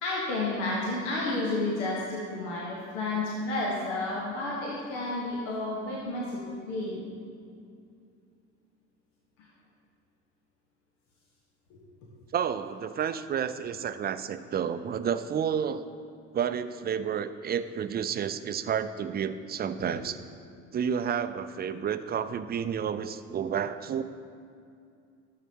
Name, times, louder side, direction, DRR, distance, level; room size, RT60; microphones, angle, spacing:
voice 1, 0.0-7.0 11.7-11.8 19.9-20.0, left 2 dB, 75° left, -4 dB, 1.5 m, -31 dB
voice 2, 12.3-15.8 16.3-20.2 20.7-24.0, right 8 dB, 25° right, 12 dB, 0.4 m, -30 dB
12.0 x 7.4 x 2.9 m, 2.4 s
hypercardioid pair, 65°, 36 cm